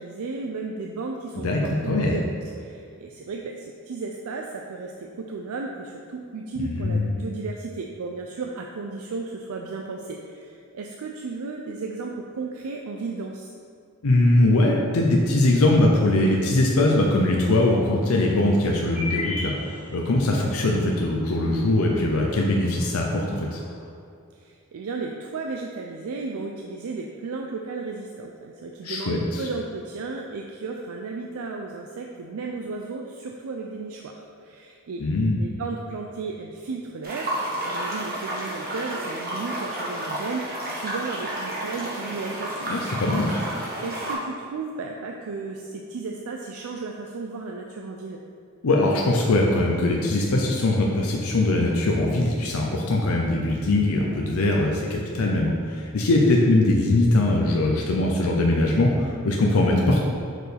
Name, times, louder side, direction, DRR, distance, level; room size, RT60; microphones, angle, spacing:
voice 1, 0.0-13.5 24.3-35.0 35.4-37.3 37.6-42.8 43.8-48.2, right 4 dB, 85° right, 1 dB, 0.4 m, -34 dB
voice 2, 1.4-2.2 6.6-7.2 14.0-23.6 28.8-29.5 35.0-35.4 42.7-43.3 48.6-60.0, left 2 dB, 90° left, -1 dB, 0.6 m, -21 dB
sound 1, 17.1-23.9, left 3 dB, 35° left, 1.3 m, -39 dB
sound 2, 37.0-44.1, right 1 dB, 45° right, 1.2 m, -31 dB
6.1 x 4.6 x 3.4 m, 2.5 s
head